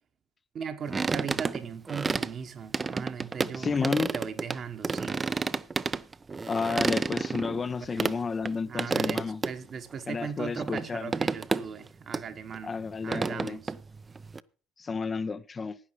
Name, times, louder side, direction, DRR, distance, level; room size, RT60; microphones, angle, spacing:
voice 1, 0.5-5.2 8.0-8.1 8.7-12.7 13.0-13.7, right 6 dB, 40° right, 1.1 m, -38 dB
sound 1, 0.9-2.3 2.7-4.6 4.8-8.1 8.5-8.6 8.8-9.5 9.9-10.0 10.6-10.9 11.1-11.9 12.1-12.2 12.5-14.4, right 4 dB, 25° right, 0.5 m, -30 dB
voice 2, 3.5-4.1 6.5-9.4 10.1-11.1 12.6-13.6 14.8-15.8, left 5 dB, 30° left, 0.5 m, -31 dB
16.0 x 10.5 x 3.2 m
figure-of-eight pair, 60°, 0 cm